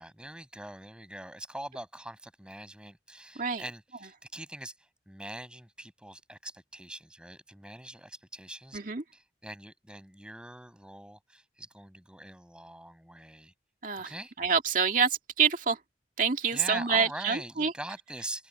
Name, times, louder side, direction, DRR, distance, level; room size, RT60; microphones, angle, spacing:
voice 1, 0.0-8.8 9.1-13.5 14.0-14.3 16.5-18.5, right 1 dB, 5° right, 7.6 m, -43 dB
voice 2, 8.7-9.0 13.8-14.1 14.4-15.8 16.2-17.7, right 6 dB, 50° right, 2.3 m, -27 dB
head